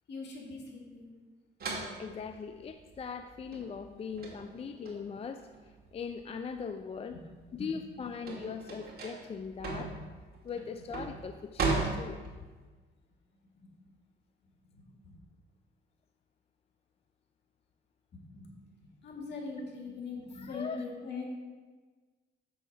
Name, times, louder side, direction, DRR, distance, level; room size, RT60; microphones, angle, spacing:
voice 1, 0.1-1.1 7.1-7.2 7.5-7.7 7.9-8.0 13.6-13.9 14.8-14.9 18.1-21.3, left 4 dB, 60° left, 0 dB, 2.0 m, -42 dB
sound 1, 1.6-6.6 7.0-12.6, right 3 dB, 50° right, 1.8 m, -37 dB
voice 2, 2.0-5.5 5.9-7.2 7.5-9.9 10.4-12.2 20.4-20.8, left 6 dB, 30° left, 8 dB, 0.4 m, -40 dB
6.9 x 6.3 x 4.5 m, 1.4 s
cardioid pair, 90°, 20 cm